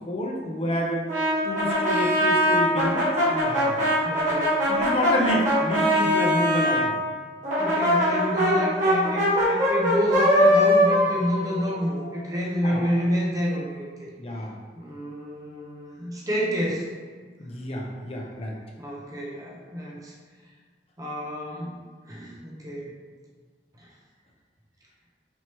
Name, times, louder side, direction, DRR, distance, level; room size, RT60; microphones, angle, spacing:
voice 1, 0.1-1.0 1.4-3.9 4.7-6.9 12.6-12.9 14.2-14.5 17.4-18.6, left 1 dB, 35° left, -1 dB, 0.6 m, -28 dB
Brass instrument, 1.1-6.8 7.4-12.2, equal, 45° right, 1.3 m, -22 dB
voice 2, 4.0-4.6 7.6-14.1 14.8-16.9 18.8-20.1 21.0-21.8 22.0-22.9 23.8-23.9, equal, 20° right, -4 dB, 0.6 m, -29 dB
4.4 x 3.0 x 3.0 m, 1.5 s
head